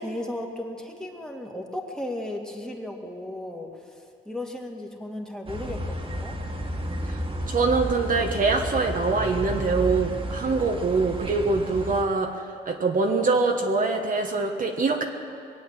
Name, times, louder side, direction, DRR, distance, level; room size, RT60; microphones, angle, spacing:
voice 1, 0.0-6.4, left 1 dB, 5° left, 1 dB, 2.1 m, -35 dB
sound 1, 5.5-12.0, equal, 25° right, 2.0 m, -32 dB
voice 2, 7.5-15.0, right 3 dB, 45° right, 2 dB, 1.3 m, -24 dB
22.0 x 8.5 x 7.6 m, 2.7 s
cardioid pair, 90°, 20 cm